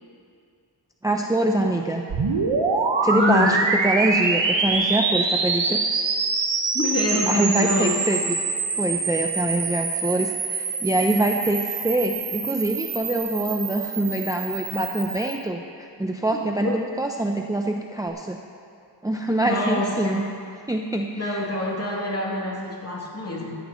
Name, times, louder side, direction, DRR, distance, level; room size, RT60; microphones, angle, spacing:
voice 1, 1.0-2.0 3.0-3.6 3.8-5.8 7.3-8.4 8.8-18.4 19.0-20.3 20.7-21.5, right 1 dB, 10° right, 2 dB, 0.6 m, -24 dB
sound 1, 2.1-15.4, right 4 dB, 85° right, 1.5 m, -25 dB
voice 2, 3.1-3.6 6.7-7.9 16.3-16.8 19.5-20.3 21.2-23.6, left 2 dB, 35° left, -4 dB, 2.9 m, -26 dB
15.5 x 15.0 x 3.1 m, 2.4 s
wide cardioid pair, 95°, 44 cm